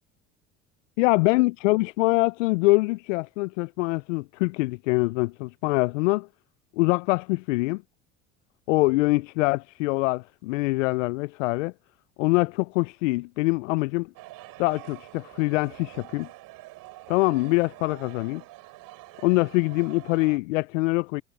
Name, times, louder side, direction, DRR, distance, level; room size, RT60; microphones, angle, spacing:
voice 1, 1.0-6.3 6.8-7.8 8.7-11.7 12.2-14.1 14.6-16.3 17.1-18.4 19.2-21.2, left 24 dB, 80° left, 0.5 m, -24 dB
sound 1, 14.2-20.4, right 18 dB, 65° right, 6.9 m, -46 dB
hypercardioid pair, 70°, 37 cm